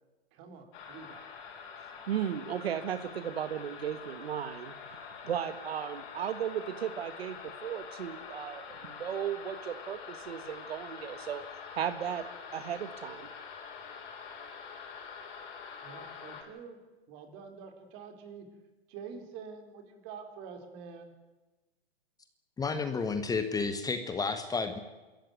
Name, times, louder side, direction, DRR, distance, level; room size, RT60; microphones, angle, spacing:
voice 1, 0.3-1.2 15.8-16.8 17.1-18.5 18.9-21.1, right 6 dB, 40° right, 6 dB, 4.3 m, -46 dB
sound 1, 0.7-16.4, left 6 dB, 45° left, 5.9 m, -45 dB
voice 2, 2.1-4.7 5.2-11.4 11.7-12.2 12.5-13.3, right 9 dB, 70° right, 11 dB, 1.7 m, -35 dB
voice 3, 22.6-24.8, left 4 dB, 10° left, 9 dB, 1.3 m, -31 dB
25.5 x 14.0 x 9.4 m, 1.2 s
hypercardioid pair, 125°, 32 cm